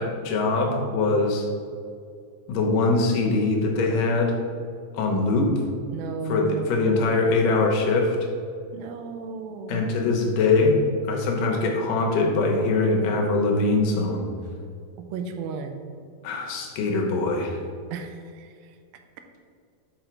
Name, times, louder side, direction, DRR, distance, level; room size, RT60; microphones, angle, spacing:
voice 1, 0.0-1.4 2.5-4.3 4.9-5.5 6.3-8.2 9.7-10.8 11.1-14.3 16.2-17.6, left 3 dB, 75° left, 1 dB, 2.2 m, -22 dB
voice 2, 5.9-7.2 8.7-10.1 15.1-15.8 17.9-18.8, right 5 dB, 85° right, 6 dB, 2.4 m, -34 dB
6.0 x 5.1 x 4.5 m, 2.2 s
omnidirectional pair, 4.1 m